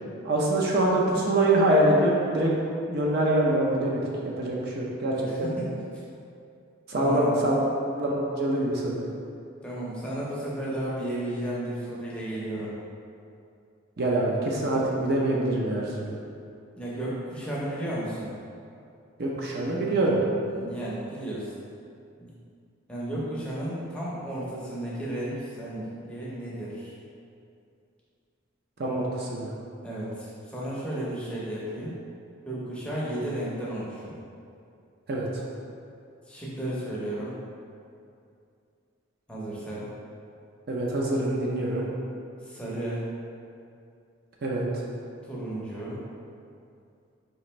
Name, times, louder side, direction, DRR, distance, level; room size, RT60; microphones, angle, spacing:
voice 1, 0.2-2.5 2.9-5.5 6.9-7.6 8.0-9.0 14.0-16.2 19.2-20.2 28.8-29.5 35.1-35.4 40.7-41.9 44.4-44.7, right 1 dB, 50° right, -3 dB, 0.5 m, -25 dB
voice 2, 5.3-5.8 7.0-7.5 9.6-12.7 16.8-18.3 20.5-21.5 22.2-22.3 22.9-26.9 29.8-32.0 32.5-34.2 36.3-37.4 39.3-39.9 42.4-43.0 45.3-46.0, right 1 dB, 5° left, -8 dB, 0.6 m, -33 dB
4.2 x 2.5 x 3.1 m, 2.5 s
head